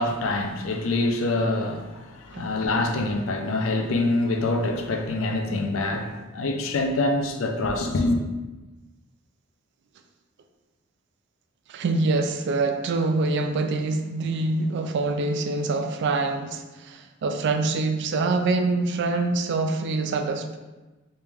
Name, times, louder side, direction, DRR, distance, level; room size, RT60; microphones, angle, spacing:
voice 1, 0.0-8.2, left 2 dB, 70° left, 0.5 m, -25 dB
voice 2, 11.7-20.6, right 3 dB, 55° right, 0.4 m, -25 dB
3.2 x 2.9 x 3.4 m
head